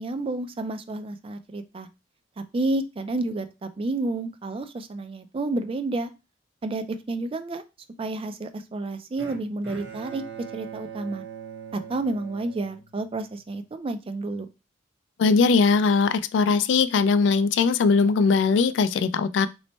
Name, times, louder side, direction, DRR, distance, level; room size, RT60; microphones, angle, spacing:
voice 1, 0.0-1.9 2.5-6.1 6.6-7.6 8.0-10.2 10.5-11.2 11.7-14.5, right 2 dB, 30° right, 0.4 m, -30 dB
Bowed string instrument, 9.2-13.4, right 7 dB, 70° right, 0.9 m, -41 dB
voice 2, 15.2-19.5, left 4 dB, 80° left, 0.3 m, -20 dB
3.1 x 2.1 x 4.1 m
head